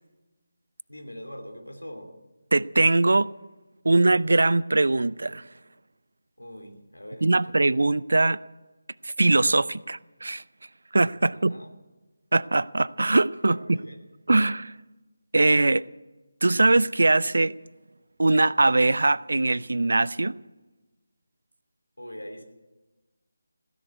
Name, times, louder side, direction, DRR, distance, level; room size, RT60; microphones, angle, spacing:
voice 1, 0.9-2.1 6.4-7.2 7.8-7.9 11.1-11.7 13.5-14.0 22.0-22.4, equal, 85° left, 3.0 m, -42 dB
voice 2, 2.5-3.3 3.8-5.5 7.2-8.4 9.0-10.4 10.9-11.5 12.3-13.8 14.3-14.7 15.3-15.8 16.4-17.5 18.2-20.3, right 2 dB, 65° right, 0.5 m, -21 dB
16.0 x 10.5 x 8.3 m
figure-of-eight pair, 160°, 0 cm